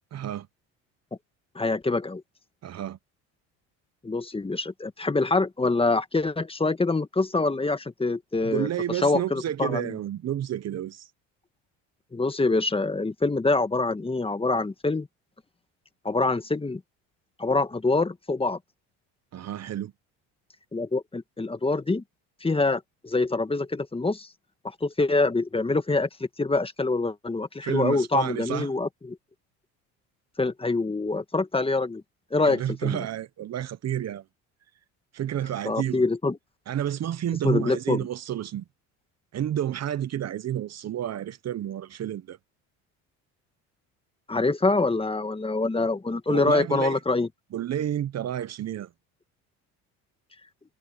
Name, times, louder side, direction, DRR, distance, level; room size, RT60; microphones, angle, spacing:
voice 1, 0.1-0.5 2.6-3.0 8.4-11.1 19.3-19.9 27.6-28.7 32.4-34.2 35.1-36.0 36.7-38.6 39.3-42.4 46.3-47.0 47.5-48.9, right 11 dB, 45° right, 1.1 m, -30 dB
voice 2, 1.5-2.2 4.0-9.9 12.1-15.1 16.0-16.8 17.4-18.6 20.7-22.0 22.4-24.3 24.6-26.1 26.4-29.2 30.4-32.0 32.3-33.0 35.6-36.4 37.4-38.1 44.3-47.3, left 3 dB, 15° left, 1.7 m, -25 dB
supercardioid pair, 90°, 36 cm